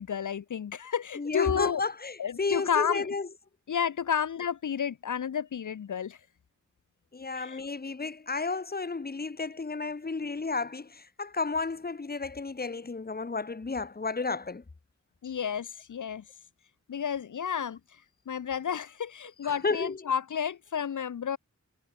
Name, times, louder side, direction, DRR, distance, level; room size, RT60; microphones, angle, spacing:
voice 1, 0.0-1.8 2.2-3.1 3.7-6.2 7.4-7.6 15.2-16.2 16.9-17.8 18.3-21.4, left 8 dB, 80° left, 0.5 m, -31 dB
voice 2, 1.2-3.3 7.1-14.6 19.4-20.0, left 4 dB, 30° left, 0.8 m, -32 dB
wide cardioid pair, 45°, 30 cm